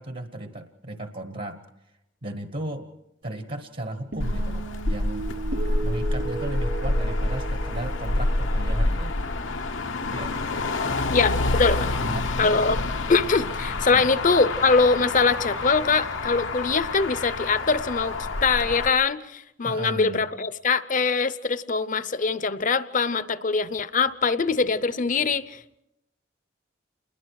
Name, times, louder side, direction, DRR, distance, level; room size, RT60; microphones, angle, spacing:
voice 1, 0.0-1.6 2.2-2.9 3.2-5.3 5.8-9.1 10.1-10.4 12.0-12.6 13.9-14.1 19.6-20.3, right 1 dB, 50° right, 7 dB, 1.2 m, -35 dB
sound 1, 4.1-10.7, right 3 dB, 75° right, 5.2 m, -37 dB
Motor vehicle (road), 4.2-18.9, left 2 dB, 90° left, 1.2 m, -28 dB
voice 2, 11.1-11.9 12.4-12.8 13.1-18.2 18.4-25.8, left 4 dB, 40° left, 14 dB, 0.7 m, -23 dB
28.5 x 21.0 x 4.8 m, 0.86 s
head